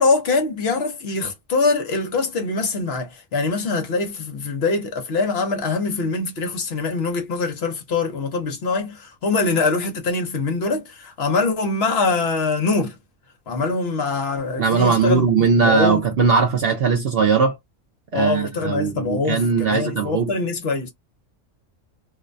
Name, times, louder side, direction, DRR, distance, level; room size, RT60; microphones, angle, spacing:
voice 1, 0.0-13.0 13.5-16.1 18.1-20.9, left 3 dB, 55° left, 0.9 m, -23 dB
voice 2, 14.6-17.6 18.1-20.3, right 5 dB, 60° right, 0.6 m, -19 dB
2.5 x 2.1 x 2.5 m
omnidirectional pair, 1.4 m